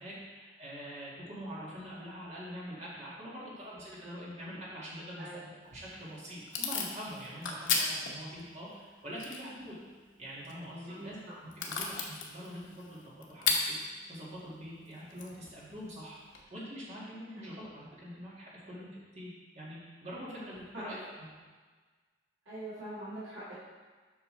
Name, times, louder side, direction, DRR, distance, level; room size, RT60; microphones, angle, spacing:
voice 1, 0.0-9.8 10.2-11.2 11.6-21.3, equal, 35° right, -7 dB, 1.9 m, -44 dB
Packing tape duct tape / Tearing, 5.6-16.4, left 4 dB, 85° left, 0.9 m, -38 dB
voice 2, 22.5-23.5, right 1 dB, 85° right, -12 dB, 2.2 m, -42 dB
7.7 x 5.6 x 3.2 m, 1.4 s
head